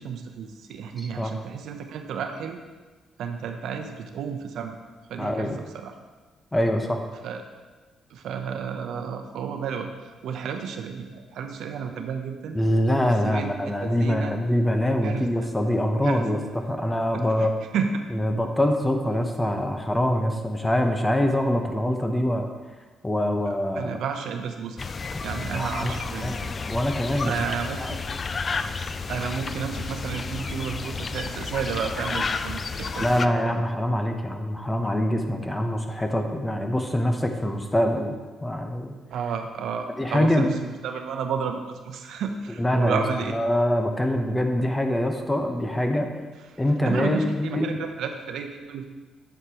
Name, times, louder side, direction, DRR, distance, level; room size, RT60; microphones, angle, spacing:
voice 1, 0.0-2.6 3.2-4.8 5.1-5.9 7.2-7.4 8.1-12.6 13.0-14.3 15.0-15.3 16.0-16.3 17.1-17.5 17.7-18.0 23.5-24.8 25.2-26.5 27.2-28.0 29.1-33.6 39.1-43.4 46.5-48.9, right 6 dB, 75° right, 5 dB, 0.7 m, -32 dB
voice 2, 1.0-1.3 5.2-5.6 6.5-7.0 12.5-17.5 18.1-22.5 23.0-23.9 25.1-25.2 25.5-25.9 26.2-27.3 27.8-27.9 33.0-38.9 40.0-40.5 42.6-46.1 46.6-47.8, left 1 dB, 10° left, 4 dB, 0.9 m, -24 dB
sound 1, 24.8-33.3, left 4 dB, 35° left, 0.3 m, -31 dB
8.1 x 7.9 x 3.0 m, 1.3 s
cardioid pair, 90°, 0 cm